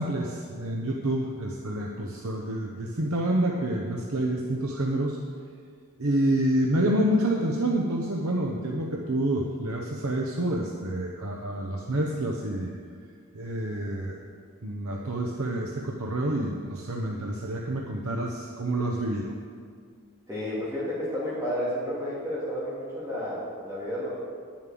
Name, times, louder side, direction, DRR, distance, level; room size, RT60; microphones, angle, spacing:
voice 1, 0.0-5.2 6.0-12.7 13.3-14.2 14.6-19.4, right 1 dB, 75° right, 0 dB, 1.0 m, -28 dB
voice 2, 20.3-24.2, equal, 15° right, -9 dB, 2.4 m, -31 dB
10.5 x 7.4 x 7.7 m, 2.1 s
head